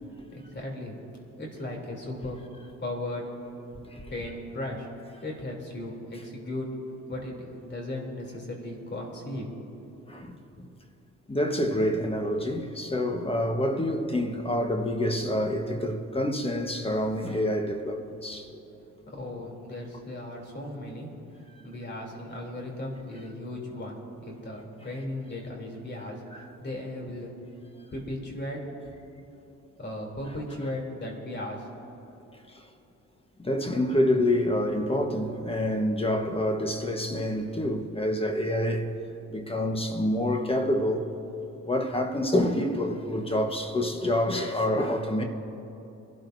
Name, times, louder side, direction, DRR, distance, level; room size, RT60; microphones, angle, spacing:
voice 1, 0.3-1.0 1.4-2.4 2.8-3.2 4.1-4.9 5.2-6.7 7.1-9.5 19.1-21.1 21.6-27.3 27.9-28.9 29.8-31.7, left 1 dB, 35° left, 3.3 m, -36 dB
voice 2, 11.3-18.6 26.3-26.4 32.5-32.6 33.4-38.9 39.3-41.1 41.7-45.2, left 1 dB, 20° left, 1.3 m, -27 dB
26.0 x 12.5 x 2.7 m
cardioid pair, 90°, 30 cm